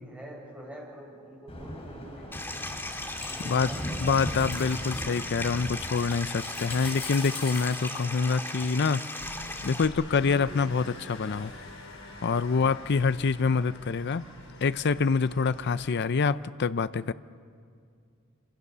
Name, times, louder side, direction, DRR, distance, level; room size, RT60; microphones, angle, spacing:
voice 1, 0.0-2.8 3.2-4.5, right 1 dB, 5° right, -3 dB, 7.6 m, -46 dB
sound 1, 1.5-8.9, left 1 dB, 30° left, 5.4 m, -39 dB
Stream, 2.3-9.9, left 2 dB, 10° left, 2.3 m, -37 dB
voice 2, 4.0-9.0 9.6-11.5 12.2-14.2 14.6-17.1, left 5 dB, 55° left, 14 dB, 0.5 m, -26 dB
sound 2, 9.2-15.9, left 1 dB, 90° left, 5.4 m, -45 dB
27.5 x 26.5 x 6.8 m, 2.3 s
head